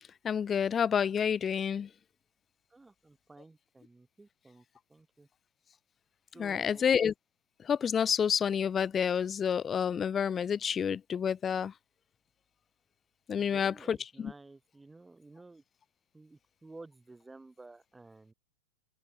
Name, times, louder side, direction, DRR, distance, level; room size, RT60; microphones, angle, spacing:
voice 1, 0.2-1.9 6.4-7.1 7.6-11.7 13.3-14.3, left 7 dB, 25° left, 0.8 m, -29 dB
voice 2, 2.7-5.3 6.3-6.8 13.3-15.6 16.1-18.3, right 3 dB, 10° right, 6.6 m, -53 dB
open air
figure-of-eight pair, 95°, 0 cm